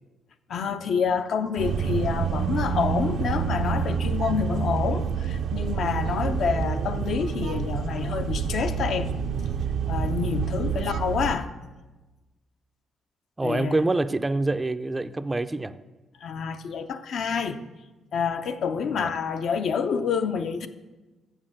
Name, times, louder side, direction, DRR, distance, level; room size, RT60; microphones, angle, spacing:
voice 1, 0.5-9.1 9.9-11.5 13.4-13.8 16.2-17.6 18.1-20.7, left 6 dB, 65° left, 0.6 m, -28 dB
sound 1, 1.6-11.3, right 6 dB, 70° right, 0.5 m, -27 dB
voice 2, 13.4-15.7 19.0-19.1, right 2 dB, 20° right, 0.4 m, -26 dB
7.2 x 6.5 x 7.5 m
cardioid pair, 90°, 0 cm